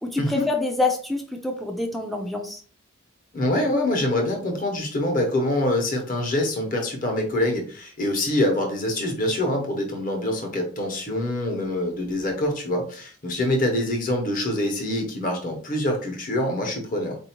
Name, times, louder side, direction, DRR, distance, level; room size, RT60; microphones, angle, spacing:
voice 1, 0.0-2.6, left 2 dB, ahead, 1 dB, 0.4 m, -26 dB
voice 2, 3.3-17.2, left 1 dB, 40° left, 2 dB, 1.0 m, -25 dB
4.3 x 2.7 x 2.8 m, 0.41 s
head